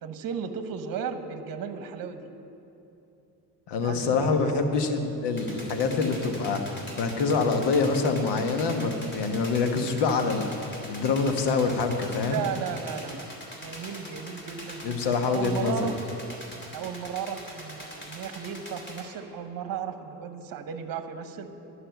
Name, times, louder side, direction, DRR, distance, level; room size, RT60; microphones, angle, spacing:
voice 1, 0.0-2.3 3.8-4.6 12.3-13.3 13.6-16.0 16.7-21.5, right 7 dB, 50° right, 9 dB, 1.0 m, -35 dB
voice 2, 3.7-10.5 10.9-12.4 14.8-15.9, left 4 dB, 65° left, 6 dB, 1.4 m, -25 dB
sound 1, 5.4-19.0, equal, 25° left, 3.3 m, -43 dB
11.5 x 6.6 x 9.0 m, 2.8 s
hypercardioid pair, 65°, 45 cm